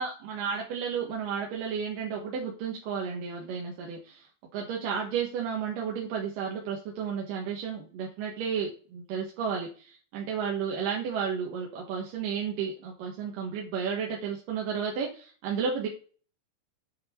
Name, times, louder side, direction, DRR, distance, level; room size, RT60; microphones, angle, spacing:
voice 1, 0.0-4.2 4.5-15.9, right 6 dB, 90° right, -1 dB, 3.0 m, -32 dB
8.5 x 4.6 x 4.2 m, 0.39 s
omnidirectional pair, 3.7 m